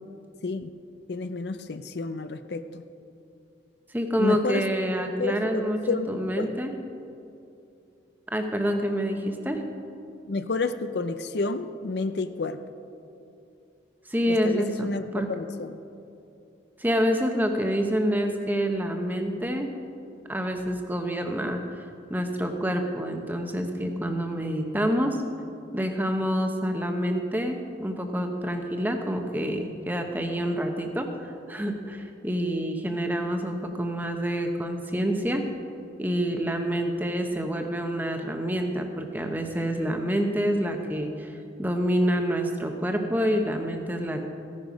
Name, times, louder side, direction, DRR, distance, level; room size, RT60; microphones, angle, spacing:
voice 1, 1.1-2.8 4.2-4.6 5.2-6.5 10.3-12.6 14.3-15.8, left 3 dB, 65° left, 10 dB, 0.5 m, -30 dB
voice 2, 3.9-5.8 6.1-6.7 8.3-9.6 14.1-15.3 16.8-19.7 20.3-21.8 22.1-25.2 25.7-35.4 36.0-44.2, equal, 10° right, 4 dB, 1.0 m, -27 dB
15.5 x 11.0 x 5.1 m, 2.7 s
head